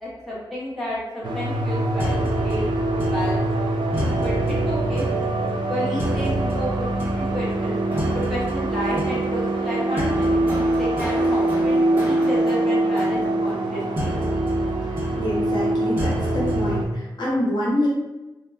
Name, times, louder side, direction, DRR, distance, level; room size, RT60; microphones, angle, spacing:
voice 1, 0.0-2.2 2.4-3.7 4.0-4.3 4.6-5.0 5.7-7.8 8.1-14.1, equal, ahead, -9 dB, 1.0 m, -31 dB
sound 1, 1.2-16.9, right 2 dB, 70° right, 0.4 m, -24 dB
sound 2, 2.0-16.7, equal, 20° right, 0.8 m, -31 dB
voice 2, 15.2-17.9, left 1 dB, 65° left, -6 dB, 0.8 m, -26 dB
2.2 x 2.1 x 3.3 m, 1.0 s
wide cardioid pair, 145°, 8 cm